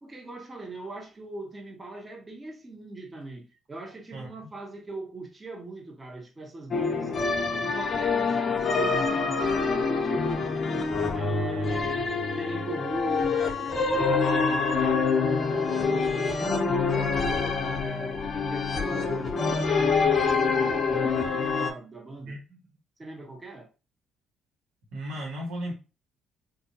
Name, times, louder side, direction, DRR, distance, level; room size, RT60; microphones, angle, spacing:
voice 1, 0.0-7.1 7.6-10.9 11.1-15.1 15.5-22.6 23.0-23.7, right 2 dB, 25° right, 1.1 m, -40 dB
sound 1, 6.7-21.7, left 4 dB, 45° left, 0.7 m, -26 dB
voice 2, 24.9-25.7, equal, 80° right, 1.5 m, -35 dB
3.4 x 2.6 x 2.8 m
supercardioid pair, 65°, 0 cm